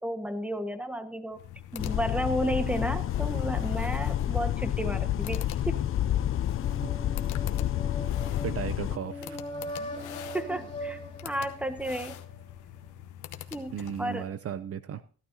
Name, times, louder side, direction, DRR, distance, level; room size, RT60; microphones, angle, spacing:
voice 1, 0.0-1.4 1.7-5.8 9.2-9.4 10.3-12.2 13.5-14.3, equal, 5° right, 8 dB, 1.4 m, -33 dB
sound 1, 1.3-14.3, left 11 dB, 80° left, 1.0 m, -45 dB
sound 2, 1.8-9.0, left 11 dB, 45° left, 0.5 m, -29 dB
sound 3, 6.6-12.4, equal, 15° left, 3.1 m, -41 dB
voice 2, 8.4-9.4 13.7-15.0, right 9 dB, 50° right, 14 dB, 0.6 m, -35 dB
15.5 x 12.0 x 2.8 m, 0.41 s
cardioid pair, 90°, 30 cm